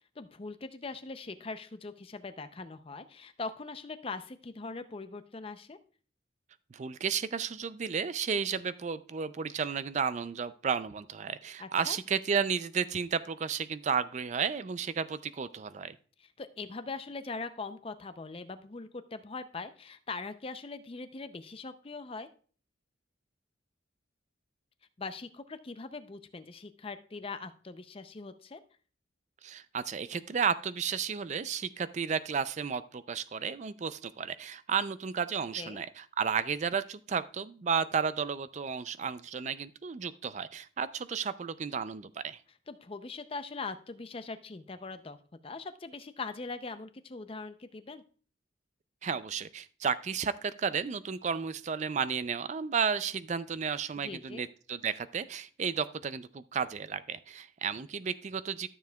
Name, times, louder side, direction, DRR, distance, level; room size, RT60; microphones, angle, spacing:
voice 1, 0.2-5.8 11.6-12.0 16.2-22.3 25.0-28.6 35.6-35.8 42.7-45.2 45.4-48.0 54.0-54.4, left 3 dB, 30° left, 10 dB, 0.5 m, -41 dB
voice 2, 6.7-16.0 29.4-42.4 49.0-58.7, right 6 dB, 35° right, 14 dB, 0.4 m, -33 dB
13.0 x 7.0 x 2.3 m, 0.42 s
head